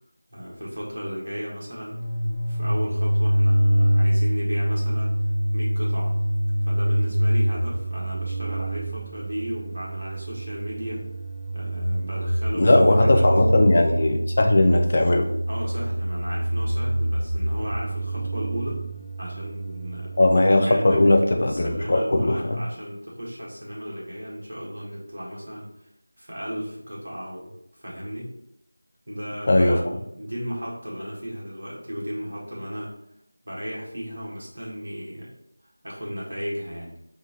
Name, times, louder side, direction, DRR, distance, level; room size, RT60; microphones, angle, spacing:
voice 1, 0.3-2.0 2.5-5.1 5.5-6.2 6.6-11.1 11.5-13.3 15.5-18.8 19.2-20.1 20.6-21.0 21.4-25.7 26.2-27.5 27.8-28.3 29.1-32.9 33.4-35.3 35.8-37.0, equal, 50° right, -5 dB, 1.4 m, -34 dB
sound 1, 1.9-21.1, right 1 dB, 10° right, 1.1 m, -25 dB
voice 2, 12.6-15.3 20.2-22.3 29.5-29.8, left 1 dB, 35° left, 3 dB, 0.5 m, -18 dB
3.7 x 2.5 x 3.8 m, 0.78 s
figure-of-eight pair, 170°, 0 cm